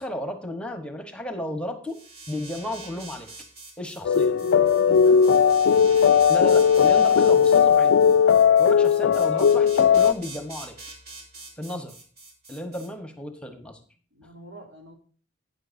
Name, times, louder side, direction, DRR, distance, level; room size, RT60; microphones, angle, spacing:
voice 1, 0.0-2.0 2.3-3.3 3.8-4.4 6.3-8.0 8.6-10.7 11.6-11.9 12.5-13.8, left 1 dB, 5° left, 7 dB, 1.1 m, -33 dB
sound 1, 1.9-12.9, right 3 dB, 55° right, 3.7 m, -44 dB
sound 2, 4.0-10.1, left 7 dB, 75° left, 0.3 m, -17 dB
voice 2, 4.1-5.2 14.1-14.9, equal, 80° right, 1 dB, 3.3 m, -43 dB
12.0 x 9.7 x 2.6 m, 0.43 s
head